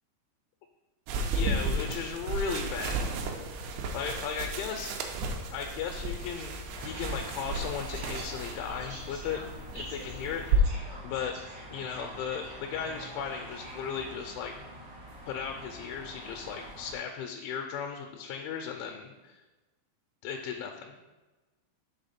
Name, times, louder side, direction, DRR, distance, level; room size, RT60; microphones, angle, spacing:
voice 1, 1.1-3.1 3.9-5.0 5.5-6.6 6.8-9.4 9.8-10.8 11.0-11.4 11.7-14.5 15.3-19.4 20.2-20.9, left 7 dB, 85° left, 3 dB, 2.9 m, -36 dB
sound 1, 1.1-10.6, right 3 dB, 80° right, 2.7 m, -33 dB
sound 2, 6.7-17.0, right 1 dB, 65° right, 1.3 m, -45 dB
6.9 x 3.6 x 5.6 m, 1.2 s
omnidirectional pair, 5.3 m